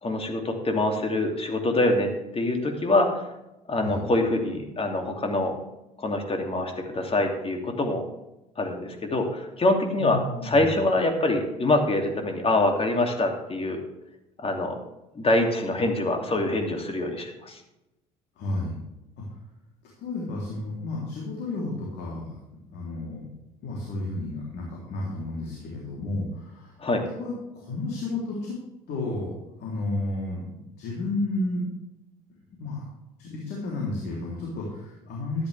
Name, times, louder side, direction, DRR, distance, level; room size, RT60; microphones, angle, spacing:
voice 1, 0.0-3.2 3.7-5.5 6.0-8.0 8.6-13.8 14.4-14.7 15.1-17.6 26.8-27.0, left 2 dB, 30° left, 3 dB, 2.8 m, -25 dB
voice 2, 10.0-10.7 18.4-18.8 19.2-19.3 20.0-22.3 22.7-23.3 23.6-26.7 27.2-28.6 28.9-31.7 32.6-32.8 33.2-35.5, left 2 dB, 60° left, -3 dB, 3.5 m, -32 dB
13.0 x 10.5 x 3.5 m, 0.93 s
hypercardioid pair, 55°, 19 cm